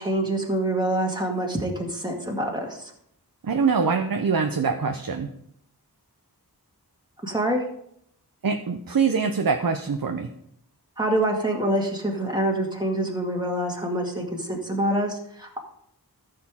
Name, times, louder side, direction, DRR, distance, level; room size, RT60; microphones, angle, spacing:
voice 1, 0.0-2.9 7.2-7.6 11.0-15.6, right 1 dB, 10° right, 0 dB, 2.0 m, -26 dB
voice 2, 3.4-5.3 8.4-10.3, right 5 dB, 60° right, 5 dB, 0.8 m, -24 dB
14.0 x 6.7 x 3.7 m, 0.71 s
wide cardioid pair, 65°, 39 cm